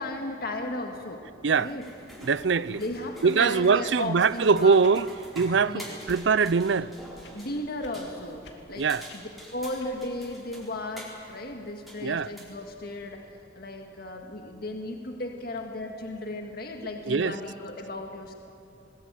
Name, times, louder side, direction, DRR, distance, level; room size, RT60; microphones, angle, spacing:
voice 1, 0.0-1.2 1.5-1.9 2.7-4.8 5.7-6.0 7.3-8.4 8.7-8.9 9.1-13.3 13.5-18.3, left 1 dB, 55° left, 1.8 m, -35 dB
sound 1, 1.4-13.1, equal, ahead, 4.4 m, -47 dB
voice 2, 2.2-2.8 3.2-5.1 5.4-5.8 6.1-6.9 8.8-9.0 12.0-12.3 17.1-17.3, right 5 dB, 70° right, 0.5 m, -22 dB
sound 2, 4.0-4.2 4.8-5.0 6.0-6.2 6.7-6.9 7.2-7.3 7.8-8.0 8.4-8.6 9.1-9.2 9.8-9.9, left 3 dB, 70° left, 2.9 m, -50 dB
21.5 x 20.5 x 9.0 m
head